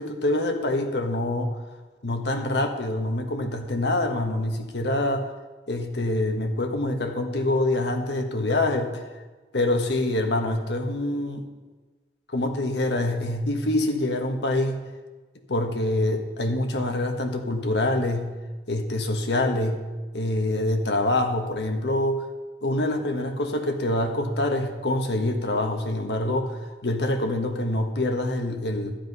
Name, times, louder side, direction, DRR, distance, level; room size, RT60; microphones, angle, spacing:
voice 1, 0.0-1.6 2.0-5.3 5.7-9.0 9.5-11.5 12.3-14.8 15.5-18.3 18.7-19.8 20.1-22.2 22.6-29.0, left 1 dB, 70° left, 5 dB, 1.4 m, -25 dB
12.0 x 9.9 x 5.4 m, 1.3 s
head